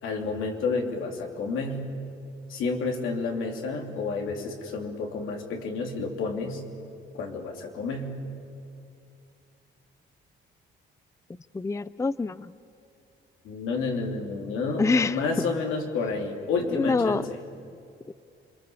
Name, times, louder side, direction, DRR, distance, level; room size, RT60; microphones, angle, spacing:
voice 1, 0.0-1.9 2.5-6.6 7.1-8.1 13.4-17.4, left 4 dB, 90° left, 2 dB, 3.3 m, -30 dB
voice 2, 11.5-12.5 14.8-15.2 16.7-17.3 18.1-18.2, left 3 dB, 15° left, 16 dB, 0.5 m, -25 dB
28.5 x 24.0 x 7.2 m, 2.5 s
cardioid pair, 90°, 20 cm